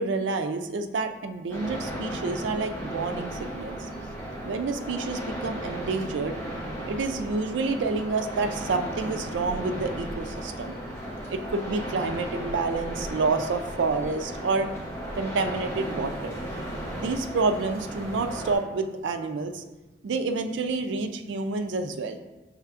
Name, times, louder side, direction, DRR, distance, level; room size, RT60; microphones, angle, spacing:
voice 1, 0.0-3.8 4.4-6.3 6.9-10.7 11.3-14.7 15.2-16.3 17.0-19.6 20.0-22.2, right 3 dB, 85° right, 7 dB, 0.4 m, -28 dB
sound 1, 1.5-18.5, right 1 dB, 15° left, 0.7 m, -35 dB
5.6 x 3.3 x 2.4 m, 1.1 s
head